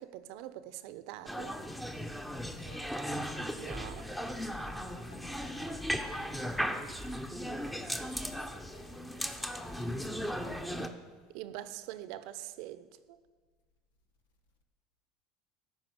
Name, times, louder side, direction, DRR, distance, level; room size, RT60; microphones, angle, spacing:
voice 1, 0.0-1.6 3.6-4.1 11.3-13.2, right 13 dB, 70° right, 0.8 m, -44 dB
sound 1, 1.3-10.9, equal, 5° left, 1.0 m, -37 dB
voice 2, 2.4-3.3 4.8-6.9 7.7-11.3, left 4 dB, 85° left, 1.5 m, -58 dB
14.0 x 5.6 x 9.4 m
supercardioid pair, 95°, 0 cm